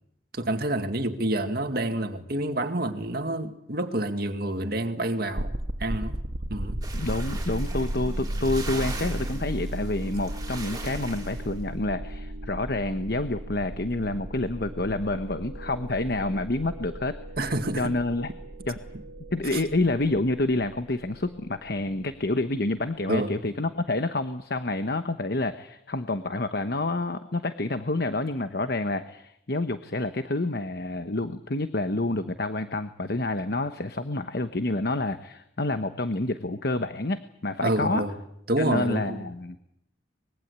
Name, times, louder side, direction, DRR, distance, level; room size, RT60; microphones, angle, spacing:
voice 1, 0.3-5.5 5.8-6.2 6.5-6.8 17.4-17.9 19.5-19.6 23.1-23.4 37.6-38.2 38.5-39.2, right 1 dB, 50° right, 2.2 m, -28 dB
sound 1, 5.3-22.3, right 1 dB, 80° right, 1.6 m, -35 dB
sound 2, 6.8-11.5, right 3 dB, 20° right, 5.0 m, -41 dB
voice 2, 6.9-17.1 17.8-18.3 18.7-18.8 19.3-38.0 38.6-39.6, left 2 dB, 55° left, 1.1 m, -28 dB
24.5 x 22.0 x 8.2 m
head